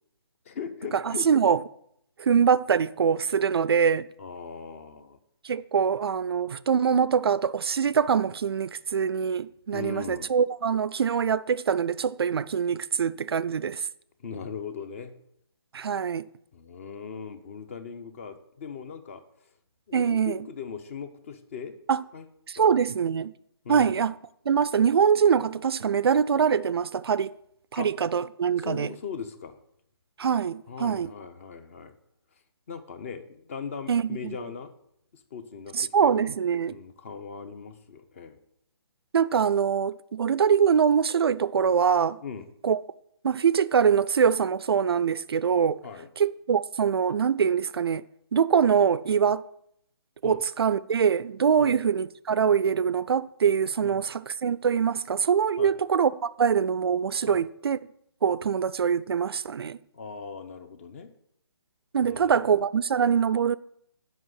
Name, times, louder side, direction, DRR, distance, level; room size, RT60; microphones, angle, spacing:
voice 1, 0.4-1.3 4.2-5.2 9.7-10.3 14.2-15.1 16.5-19.5 19.9-21.7 22.1-22.3 22.6-22.7 23.6-24.0 27.7-27.9 28.6-29.6 30.7-31.9 32.7-34.7 35.1-36.3 36.7-38.4 42.2-42.5 45.8-46.1 50.2-50.4 51.6-51.8 53.8-54.0 55.6-55.8 57.2-57.4 59.9-61.1 62.0-62.6, left 6 dB, 30° left, 0.7 m, -39 dB
voice 2, 1.1-1.6 2.2-4.1 5.4-13.8 15.7-16.3 19.9-20.4 21.9-22.0 22.5-23.3 23.7-24.1 24.5-27.3 27.7-28.9 30.2-31.1 33.9-34.3 35.7-36.8 39.1-42.2 42.6-42.8 43.2-45.8 46.2-48.0 48.3-49.4 50.2-57.8 58.2-59.8 61.9-63.5, right 7 dB, 65° right, 0.4 m, -24 dB
7.4 x 5.3 x 6.3 m
hypercardioid pair, 160°, 14 cm